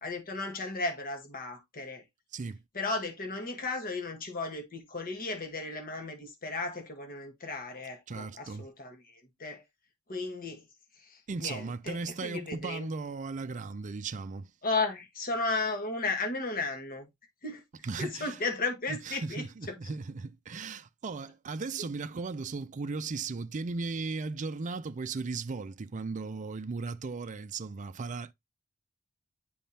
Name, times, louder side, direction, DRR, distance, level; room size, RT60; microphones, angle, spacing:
voice 1, 0.0-2.0 2.7-9.6 10.1-10.6 11.0-12.9 14.6-17.1 17.4-17.6 18.0-19.7, left 3 dB, 45° left, 1.3 m, -35 dB
voice 2, 8.1-8.7 11.3-14.5 17.8-18.4 18.9-28.3, right 4 dB, 35° right, 0.4 m, -36 dB
10.0 x 3.6 x 2.8 m
head